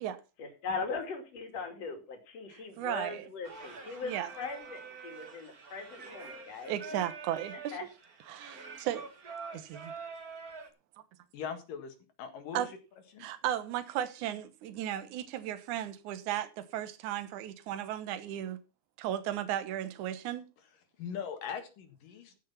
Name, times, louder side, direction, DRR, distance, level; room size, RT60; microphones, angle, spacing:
voice 1, 0.4-7.0 7.7-7.8, left 4 dB, 50° left, 3.3 m, -40 dB
voice 2, 2.8-3.2 4.0-4.3 6.7-7.8 8.3-9.1 9.5-9.9 12.5-12.7 13.2-18.6 19.0-20.5, right 11 dB, 65° right, 2.4 m, -35 dB
Singing, 3.4-10.7, right 5 dB, 35° right, 1.5 m, -46 dB
voice 3, 11.3-12.7 13.1-13.3 21.0-22.4, left 7 dB, 75° left, 3.4 m, -40 dB
14.5 x 6.5 x 5.8 m
omnidirectional pair, 4.0 m